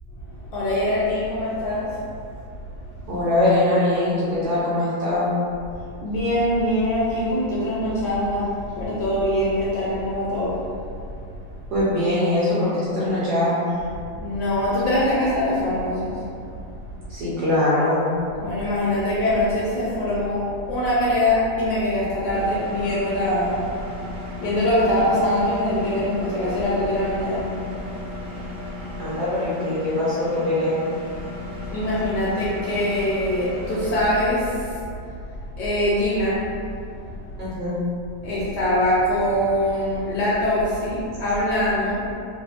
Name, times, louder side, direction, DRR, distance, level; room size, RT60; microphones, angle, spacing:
voice 1, 0.5-1.9 6.0-10.6 14.2-16.2 18.4-23.7 24.1-27.6 31.7-34.8 35.6-36.4 38.2-42.0, left 1 dB, 70° left, -8 dB, 1.0 m, -23 dB
voice 2, 3.1-5.3 11.7-13.6 17.1-18.0 29.0-30.8 37.4-37.8, left 1 dB, 70° right, -8 dB, 1.0 m, -22 dB
Engine, 22.3-34.0, left 2 dB, 85° right, 0.7 m, -36 dB
3.3 x 2.0 x 2.4 m, 2.4 s
omnidirectional pair, 2.1 m